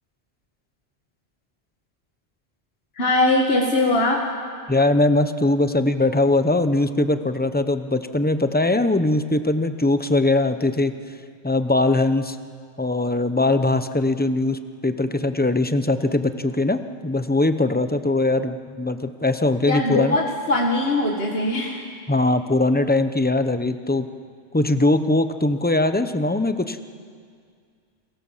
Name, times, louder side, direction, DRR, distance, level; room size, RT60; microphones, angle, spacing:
voice 1, 3.0-4.2 19.7-21.8, left 2 dB, 65° left, 0 dB, 2.2 m, -21 dB
voice 2, 4.7-10.9 11.4-12.4 12.8-20.1 22.1-24.1 24.5-26.8, left 2 dB, 10° left, 9 dB, 0.9 m, -21 dB
29.5 x 22.5 x 7.4 m, 2.1 s
omnidirectional pair, 1.1 m